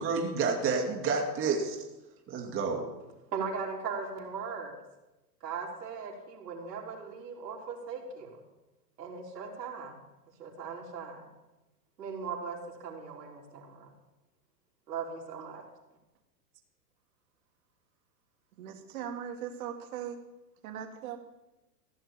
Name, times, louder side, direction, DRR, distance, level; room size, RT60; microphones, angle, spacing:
voice 1, 0.0-1.8 2.3-2.8, right 4 dB, 25° right, 0 dB, 2.4 m, -29 dB
voice 2, 3.3-4.8 5.4-8.4 9.0-10.0 10.4-11.3 12.0-13.9 14.9-15.6, right 5 dB, 80° right, -1 dB, 4.0 m, -39 dB
voice 3, 18.6-20.2 20.6-21.2, right 9 dB, 60° right, 4 dB, 2.4 m, -39 dB
15.5 x 6.6 x 8.8 m, 1.0 s
hypercardioid pair, 135°, 48 cm